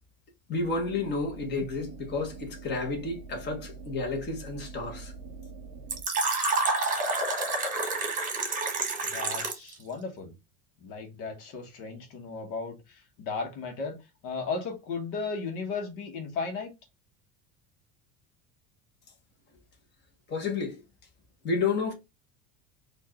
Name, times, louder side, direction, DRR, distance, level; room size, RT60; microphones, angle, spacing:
voice 1, 0.5-5.1 20.3-20.8 21.4-21.9, left 4 dB, 30° left, 1.3 m, -31 dB
sound 1, 0.5-6.0, right 4 dB, 45° right, 0.8 m, -44 dB
Fill (with liquid), 5.9-9.7, right 3 dB, 25° right, 1.2 m, -28 dB
voice 2, 9.0-10.3 10.8-14.0 14.2-16.7, left 4 dB, 65° left, 1.3 m, -35 dB
4.4 x 2.6 x 2.9 m
cardioid pair, 145°, 35 cm